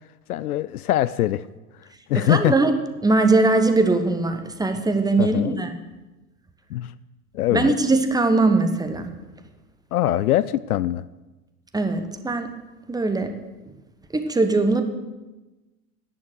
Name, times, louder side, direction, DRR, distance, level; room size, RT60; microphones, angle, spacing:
voice 1, 0.3-1.5 2.1-2.5 5.2-5.6 6.7-6.9 7.3-7.7 9.9-11.0, left 13 dB, 65° left, 17 dB, 0.5 m, -22 dB
voice 2, 2.1-2.7 3.0-5.7 7.5-9.1 11.7-12.5 12.9-13.3 14.1-14.8, right 3 dB, 10° right, 7 dB, 1.0 m, -20 dB
11.0 x 10.5 x 6.4 m, 1.1 s
figure-of-eight pair, 80°, 48 cm